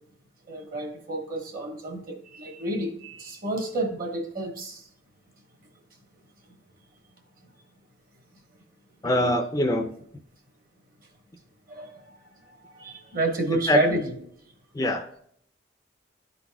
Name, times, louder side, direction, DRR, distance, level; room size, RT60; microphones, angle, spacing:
voice 1, 0.5-4.8 9.0-9.2 11.7-12.2 12.5-14.2, right 1 dB, 50° right, 3 dB, 1.3 m, -30 dB
voice 2, 9.0-9.9 13.7-13.8 14.7-15.1, left 1 dB, 20° left, 5 dB, 0.4 m, -23 dB
11.5 x 4.0 x 2.3 m, 0.67 s
head